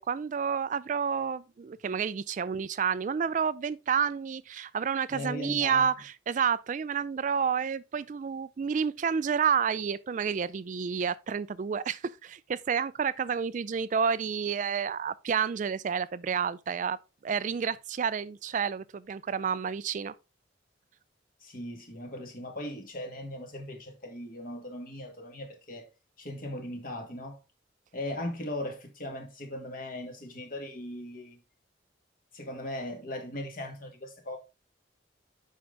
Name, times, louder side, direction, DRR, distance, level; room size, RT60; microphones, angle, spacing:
voice 1, 0.0-20.2, right 6 dB, 40° right, 0.3 m, -30 dB
voice 2, 5.1-5.8 21.4-25.9 26.2-27.4 27.9-31.4 32.3-34.4, left 1 dB, 50° left, 2.1 m, -38 dB
7.8 x 5.6 x 3.8 m
head